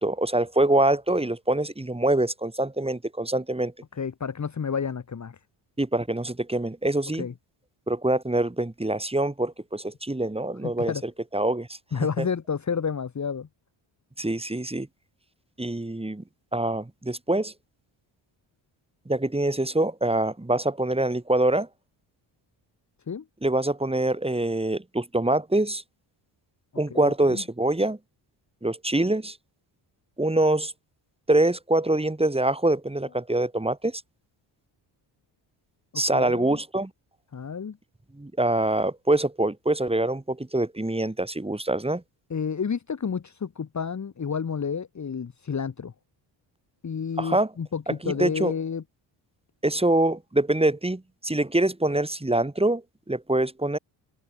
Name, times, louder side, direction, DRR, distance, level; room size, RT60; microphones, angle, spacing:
voice 1, 0.0-3.7 5.8-7.3 7.9-11.8 12.2-12.3 14.2-14.9 15.6-16.2 16.5-17.5 19.1-21.7 23.4-25.8 26.8-28.0 28.6-29.4 30.2-30.7 31.3-34.0 35.9-36.9 38.1-42.0 47.2-47.5 48.0-48.5 49.6-53.8, right 1 dB, 10° right, 4.3 m, -25 dB
voice 2, 3.9-5.4 7.2-7.3 10.6-11.0 11.9-13.5 23.1-23.2 26.9-27.4 35.9-36.6 37.3-37.8 42.3-45.9 46.8-48.8, left 6 dB, 35° left, 1.6 m, -30 dB
open air
cardioid pair, 70°, 48 cm